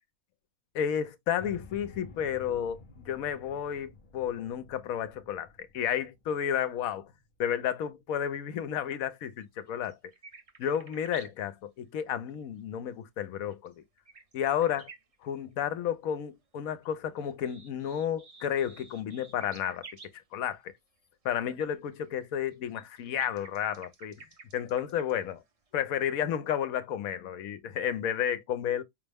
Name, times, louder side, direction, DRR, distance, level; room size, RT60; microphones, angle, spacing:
voice 1, 0.7-7.1 7.4-9.9 10.6-13.8 14.3-14.9 15.2-19.8 20.3-20.7 21.2-24.3 24.5-25.4 25.7-28.8, left 9 dB, 80° left, 1.1 m, -32 dB
sound 1, 1.4-7.5, left 3 dB, 55° left, 0.5 m, -52 dB
sound 2, 9.4-11.3 13.2-15.4 16.6-20.2 21.5-25.4 25.7-25.8, right 4 dB, 35° right, 0.6 m, -52 dB
5.3 x 2.0 x 3.4 m
omnidirectional pair, 1.5 m